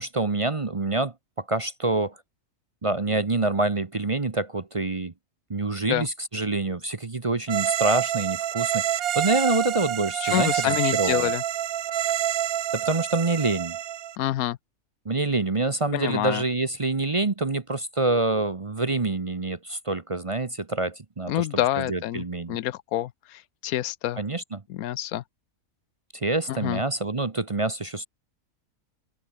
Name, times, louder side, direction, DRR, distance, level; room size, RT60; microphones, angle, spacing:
voice 1, 0.0-2.2 2.8-5.1 5.5-11.3 12.7-13.8 15.0-22.6 24.2-24.6 26.1-28.1, right 2 dB, 30° right, 0.8 m, -26 dB
sound 1, 7.5-14.2, right 11 dB, 80° right, 1.3 m, -27 dB
voice 2, 10.2-11.4 14.2-14.6 15.9-16.4 21.3-24.2 24.7-25.2 26.5-26.8, left 13 dB, 85° left, 1.1 m, -27 dB
open air
omnidirectional pair, 1.5 m